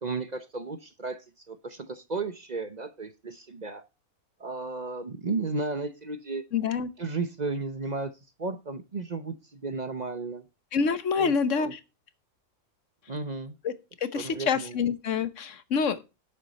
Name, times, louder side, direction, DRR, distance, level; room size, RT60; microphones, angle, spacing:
voice 1, 0.0-3.9 4.4-6.4 7.0-8.1 8.4-10.4 11.2-11.7 13.1-13.5 14.1-14.8, right 3 dB, 35° right, 0.8 m, -34 dB
voice 2, 6.5-6.9 10.7-11.8 13.6-13.7 14.0-16.0, left 6 dB, 60° left, 1.2 m, -27 dB
11.0 x 8.2 x 4.1 m
omnidirectional pair, 1.6 m